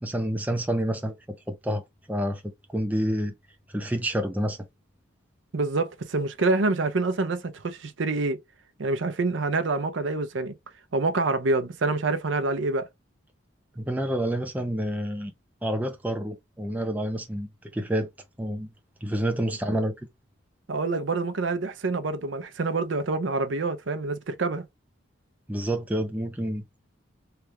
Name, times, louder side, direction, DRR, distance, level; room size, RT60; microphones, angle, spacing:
voice 1, 0.0-3.3 3.7-4.6 13.8-15.3 15.6-18.1 18.4-18.7 19.0-20.0 25.5-26.6, equal, 10° right, 0.4 m, -28 dB
voice 2, 5.5-8.4 8.8-10.5 10.9-12.9 20.7-24.6, right 3 dB, 70° right, 0.6 m, -26 dB
3.3 x 2.3 x 2.8 m
head